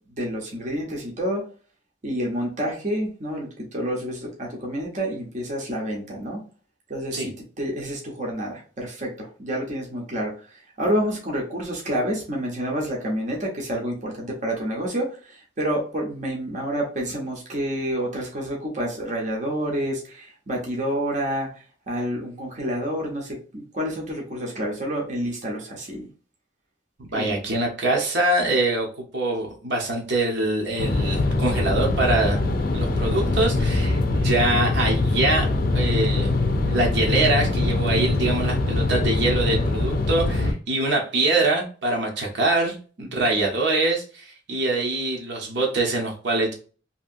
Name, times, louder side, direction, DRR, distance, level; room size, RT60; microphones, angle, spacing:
voice 1, 0.1-1.4 2.0-6.4 6.9-21.5 21.9-26.1 27.1-27.4 43.0-43.3, equal, 45° right, -1 dB, 0.8 m, -29 dB
voice 2, 27.0-32.4 32.7-35.5 35.7-36.3 36.7-46.5, right 2 dB, 70° right, 0 dB, 0.9 m, -24 dB
sound 1, 30.8-40.5, left 2 dB, 50° left, 0.5 m, -23 dB
2.8 x 2.8 x 2.6 m, 0.38 s
head